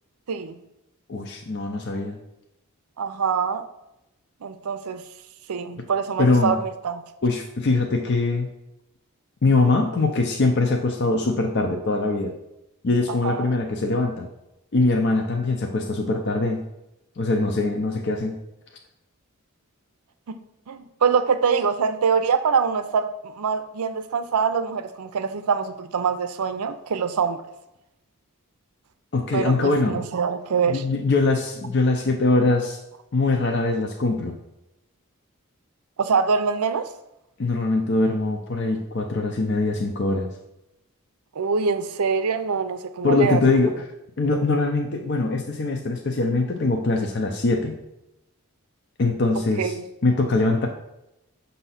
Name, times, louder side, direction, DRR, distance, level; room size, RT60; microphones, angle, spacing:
voice 1, 0.3-0.6 3.0-3.7 4.4-5.0 5.5-7.0 13.1-13.5 20.7-27.4 29.3-30.8 36.0-36.9 41.4-43.4 49.6-49.8, right 5 dB, 90° right, 0.5 m, -24 dB
voice 2, 1.1-2.2 6.2-6.5 7.2-8.5 9.4-12.3 12.8-14.3 14.7-16.6 17.2-18.4 29.1-30.0 30.7-32.8 33.1-34.4 37.4-40.3 43.0-43.7 44.2-47.7 49.0-49.7 50.0-50.7, left 3 dB, 50° left, 0.5 m, -22 dB
6.7 x 2.7 x 5.6 m
head